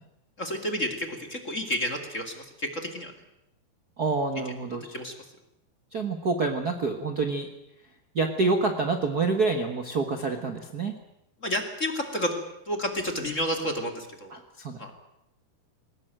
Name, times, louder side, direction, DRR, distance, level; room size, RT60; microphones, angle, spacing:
voice 1, 0.4-3.1 4.9-5.1 11.4-12.4 12.7-14.3 14.8-14.9, equal, 25° left, 4 dB, 1.9 m, -30 dB
voice 2, 4.0-4.9 5.9-7.5 8.1-10.9 14.3-14.9, right 3 dB, 70° right, 5 dB, 0.9 m, -27 dB
21.0 x 19.0 x 9.1 m, 0.82 s
omnidirectional pair, 4.4 m